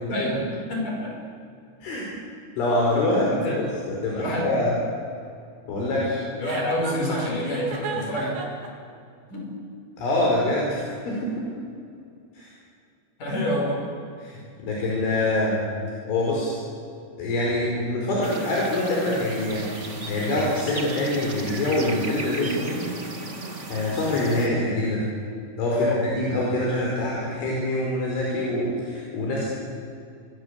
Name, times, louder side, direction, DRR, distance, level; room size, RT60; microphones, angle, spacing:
voice 1, 0.1-1.2 3.3-3.6 4.1-4.5 6.4-8.3 9.3-9.6 13.2-13.9 14.3-14.4 25.7-26.0, left 1 dB, 40° left, 0 dB, 7.5 m, -27 dB
voice 2, 2.6-4.8 5.7-6.2 10.0-11.2 12.4-12.5 14.2-15.6 16.1-16.6 17.2-22.8 23.7-25.1 25.6-29.5, left 1 dB, 70° left, -4 dB, 7.4 m, -25 dB
Chuckle chortle, 6.4-8.7, right 5 dB, 85° right, 5.9 m, -34 dB
sound 1, 18.2-24.5, right 2 dB, 65° right, 0.7 m, -35 dB
26.5 x 23.5 x 8.3 m, 2.4 s
omnidirectional pair, 5.8 m